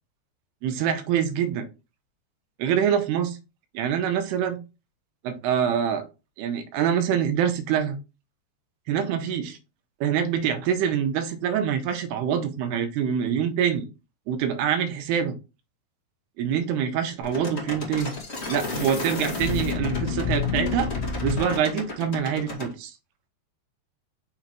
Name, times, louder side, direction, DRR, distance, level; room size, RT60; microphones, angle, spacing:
voice 1, 0.6-1.7 2.6-3.4 3.7-4.6 5.2-6.1 6.4-8.0 8.9-9.6 10.0-13.9 14.3-15.3 16.4-18.1 18.5-20.9 21.2-22.9, right 8 dB, 85° right, 2.9 m, -25 dB
sound 1, 17.2-22.7, left 4 dB, 40° left, 0.9 m, -29 dB
6.3 x 4.0 x 4.4 m
omnidirectional pair, 4.7 m